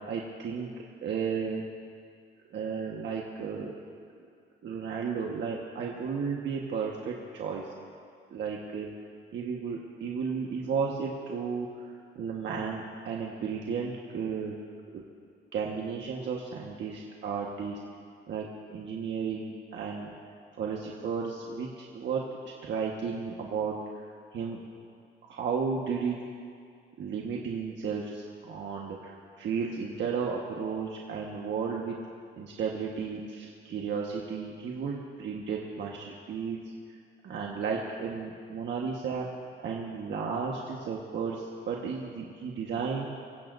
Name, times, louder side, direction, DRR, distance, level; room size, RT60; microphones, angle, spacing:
voice 1, 0.1-0.7 1.0-1.6 2.5-3.7 4.6-7.7 8.3-8.9 9.3-11.9 12.1-14.6 14.9-15.0 15.5-17.8 18.3-20.1 20.6-24.6 25.3-26.2 27.0-32.0 32.4-36.6 37.2-39.3 39.6-43.1, right 6 dB, 65° right, -2 dB, 1.5 m, -33 dB
24.5 x 15.5 x 2.7 m, 2.3 s
cardioid pair, 90°, 20 cm